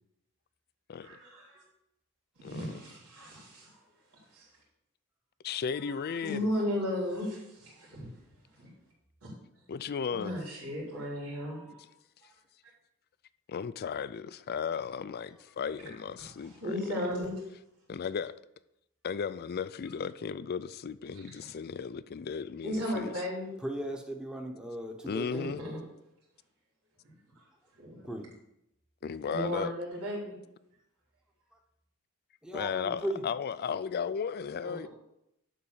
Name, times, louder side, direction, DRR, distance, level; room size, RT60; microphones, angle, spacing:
voice 1, 1.0-1.6 2.4-3.7 4.3-4.5 6.2-8.1 8.6-8.7 10.1-11.8 15.8-15.9 16.2-17.4 21.1-21.5 22.6-23.5 25.3-25.8 27.8-27.9 29.3-30.3 34.6-34.9, left 1 dB, 85° right, 4.4 m, -35 dB
voice 2, 2.4-2.8 5.4-6.5 9.7-10.4 13.5-16.8 17.9-18.3 19.0-23.1 25.1-25.6 29.0-29.7 32.5-34.9, left 6 dB, 45° left, 0.4 m, -35 dB
voice 3, 23.6-25.5 28.1-28.3 32.4-33.2, right 1 dB, 5° right, 1.0 m, -37 dB
11.5 x 4.0 x 7.2 m
head